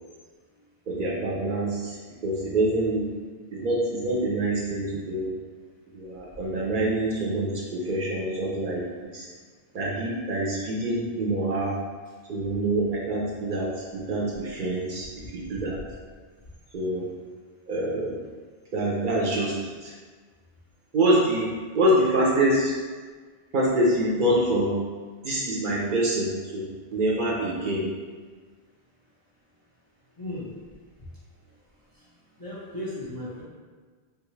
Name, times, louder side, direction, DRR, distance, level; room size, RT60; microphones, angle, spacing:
voice 1, 0.9-2.0 2.2-3.1 3.5-5.3 5.9-9.3 9.7-11.8 12.3-15.1 15.3-15.8 16.7-17.1 17.7-18.2 18.7-19.9 20.9-22.7 23.5-24.8 25.2-27.9, right 1 dB, 60° right, -4 dB, 0.6 m, -25 dB
voice 2, 30.2-30.5 32.4-33.4, left 1 dB, 25° left, -9 dB, 0.5 m, -35 dB
3.2 x 2.3 x 3.0 m, 1.5 s
omnidirectional pair, 1.0 m